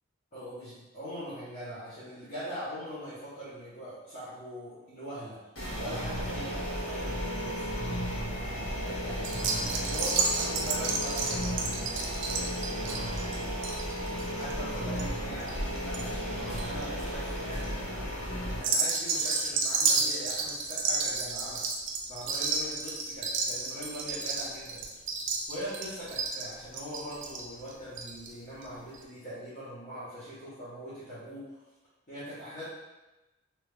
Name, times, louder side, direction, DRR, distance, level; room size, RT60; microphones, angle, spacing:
voice 1, 0.3-5.4 5.8-7.8 8.8-9.3 9.7-13.0 14.3-18.2 18.5-21.6 22.1-24.8 25.5-31.4 32.1-32.6, equal, 40° left, -13 dB, 1.0 m, -41 dB
sound 1, 5.6-18.6, equal, 70° left, 1.2 m, -34 dB
sound 2, 9.2-16.0 16.3-16.8 17.4-17.7 18.5-28.3 28.6-28.7 28.9-29.0, right 4 dB, 60° right, 0.4 m, -31 dB
3.0 x 2.4 x 3.3 m, 1.1 s
head